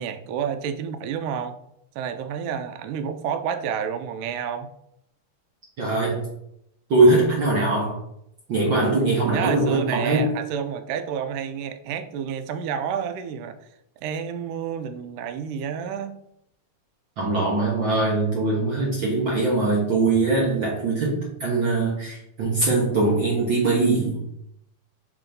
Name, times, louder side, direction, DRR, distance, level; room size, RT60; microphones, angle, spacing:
voice 1, 0.0-1.6 2.0-4.7 9.2-13.6 14.0-16.2, right 7 dB, 85° right, 9 dB, 2.1 m, -29 dB
voice 2, 5.8-6.3 6.9-8.0 8.5-10.3 17.2-24.2, right 2 dB, 55° right, -4 dB, 1.4 m, -21 dB
5.9 x 3.7 x 5.1 m, 0.78 s
omnidirectional pair, 3.6 m